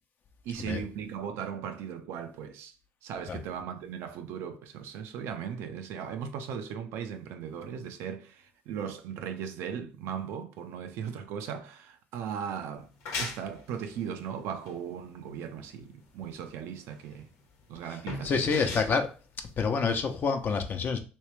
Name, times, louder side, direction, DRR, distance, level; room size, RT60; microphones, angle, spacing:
voice 1, 0.4-2.7 3.0-12.9 13.2-17.3 17.7-18.7, right 7 dB, 75° right, 0.6 m, -38 dB
sound 1, 12.7-20.2, left 3 dB, 80° left, 1.0 m, -41 dB
voice 2, 18.2-19.1 19.6-21.0, left 5 dB, 45° left, 0.8 m, -27 dB
3.2 x 3.2 x 3.2 m
supercardioid pair, 75°, 4 cm